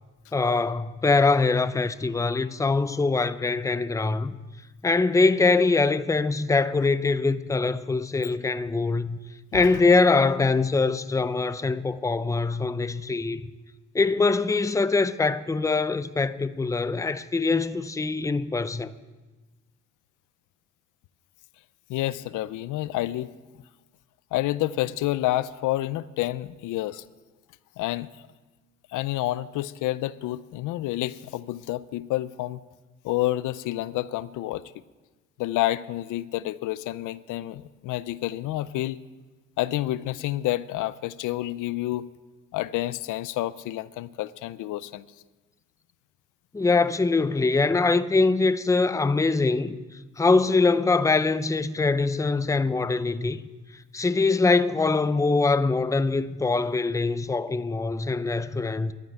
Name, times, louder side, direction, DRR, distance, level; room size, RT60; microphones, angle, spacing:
voice 1, 0.3-4.3 4.8-9.2 9.5-13.4 13.9-18.9 46.5-49.8 50.2-53.4 53.9-58.9, left 3 dB, 10° left, 0.5 m, -23 dB
voice 2, 21.9-23.3 24.3-27.0 27.8-28.1 28.9-32.6 33.0-34.7 35.4-39.0 39.6-42.1 42.5-45.0, left 15 dB, 85° left, 0.5 m, -29 dB
12.0 x 9.1 x 9.1 m
cardioid pair, 90°, 30 cm